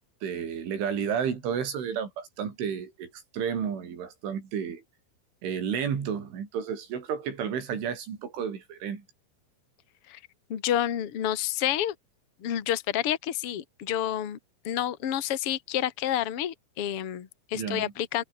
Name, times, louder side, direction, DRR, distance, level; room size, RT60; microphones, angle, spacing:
voice 1, 0.2-4.8 5.4-9.0 17.6-17.9, right 7 dB, 75° right, 6.6 m, -32 dB
voice 2, 10.5-11.9 12.4-14.4 14.6-18.2, left 11 dB, 50° left, 1.8 m, -29 dB
omnidirectional pair, 5.6 m